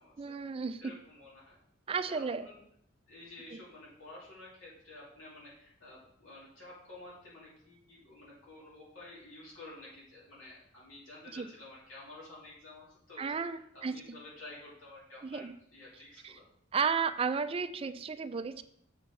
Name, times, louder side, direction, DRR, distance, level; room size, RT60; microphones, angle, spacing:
voice 1, 0.2-0.9 1.9-2.5 3.5-3.6 11.3-11.5 13.2-13.9 15.3-15.5 16.2-16.4 16.7-18.6, right 5 dB, 30° right, 11 dB, 0.4 m, -33 dB
voice 2, 0.8-1.6 1.9-2.6 3.1-16.4, left 2 dB, 85° left, -6 dB, 2.5 m, -51 dB
7.3 x 5.0 x 4.7 m, 0.70 s
head